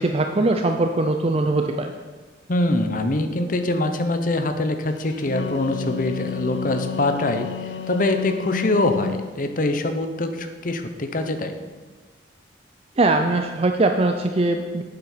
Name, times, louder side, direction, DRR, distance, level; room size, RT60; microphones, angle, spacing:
voice 1, 0.0-1.9 13.0-14.8, right 2 dB, 35° right, 5 dB, 0.5 m, -21 dB
voice 2, 2.5-11.6, left 2 dB, 50° left, 7 dB, 0.9 m, -24 dB
Wind instrument woodwind instrument, 5.1-9.3, left 8 dB, 80° left, 0.7 m, -31 dB
9.0 x 7.5 x 5.7 m, 1.3 s
head